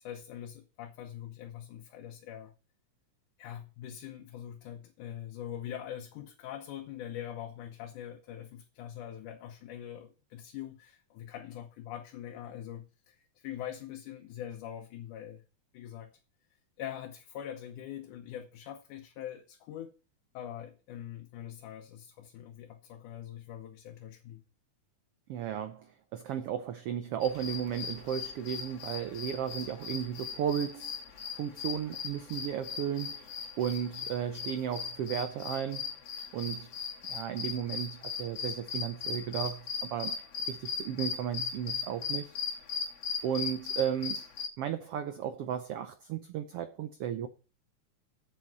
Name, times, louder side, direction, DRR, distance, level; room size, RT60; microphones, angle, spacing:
voice 1, 0.0-2.5 3.4-15.4 15.7-16.1 16.8-20.0 20.3-24.4, left 10 dB, 80° left, 2.4 m, -43 dB
voice 2, 25.3-31.0 31.3-35.9 36.3-36.7 37.1-40.2 40.5-42.3 43.2-44.2 44.6-47.3, right 9 dB, 85° right, 1.3 m, -34 dB
sound 1, 27.2-44.5, left 6 dB, 60° left, 2.4 m, -38 dB
8.3 x 7.6 x 5.5 m
omnidirectional pair, 3.6 m